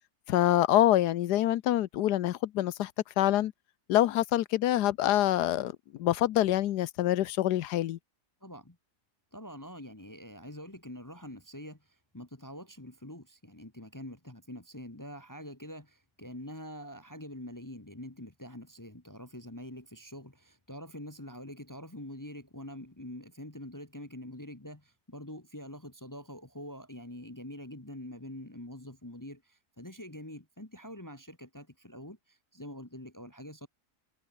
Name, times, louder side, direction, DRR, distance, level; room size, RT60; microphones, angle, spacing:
voice 1, 0.3-2.9 3.2-3.5 3.9-5.7 6.0-8.0, left 13 dB, 90° left, 1.3 m, -26 dB
voice 2, 8.4-8.8 9.3-33.7, left 1 dB, 10° left, 1.4 m, -45 dB
omnidirectional pair, 1.7 m